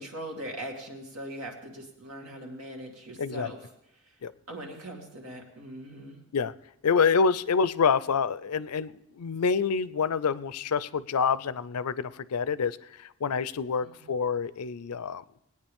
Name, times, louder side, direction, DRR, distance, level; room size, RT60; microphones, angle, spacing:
voice 1, 0.0-3.7 4.1-4.2 4.5-6.2 13.8-14.1, right 1 dB, 70° right, 1 dB, 2.5 m, -41 dB
voice 2, 3.2-3.5 4.2-4.3 6.3-6.5 6.8-15.2, left 5 dB, 90° left, 16 dB, 0.5 m, -27 dB
20.5 x 9.4 x 3.5 m, 0.80 s
head